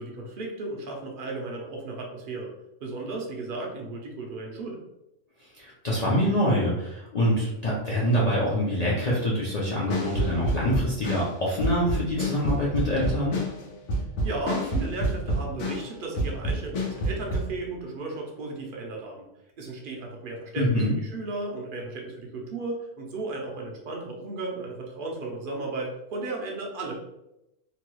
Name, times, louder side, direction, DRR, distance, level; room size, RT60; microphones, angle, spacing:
voice 1, 0.0-2.5 2.8-4.8 14.0-19.2 19.6-26.9, right 2 dB, 55° right, 0 dB, 0.7 m, -35 dB
voice 2, 5.6-13.4 20.6-20.9, equal, 45° left, -6 dB, 0.5 m, -25 dB
sound 1, 9.9-17.5, right 1 dB, 90° left, 1.1 m, -28 dB
2.9 x 2.3 x 3.0 m, 0.87 s
omnidirectional pair, 1.3 m